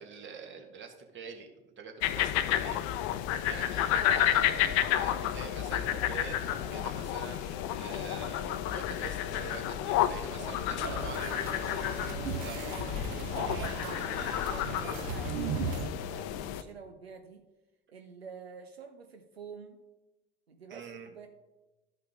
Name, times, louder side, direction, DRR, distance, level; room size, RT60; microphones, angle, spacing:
voice 1, 0.0-1.5 1.8-2.8 3.4-11.5 12.4-12.9 13.4-13.8 14.1-14.5 20.7-21.1, right 6 dB, 40° right, 4 dB, 1.6 m, -45 dB
sound 1, 2.0-16.6, left 11 dB, 55° left, 0.6 m, -31 dB
voice 2, 10.3-10.7 12.4-13.7 14.5-17.4 17.9-19.8 20.5-21.3, right 5 dB, 90° right, 6 dB, 0.6 m, -49 dB
sound 2, 10.8-15.9, right 5 dB, 60° right, 1.0 m, -37 dB
12.5 x 5.6 x 3.6 m, 1.1 s
figure-of-eight pair, 65°, 30 cm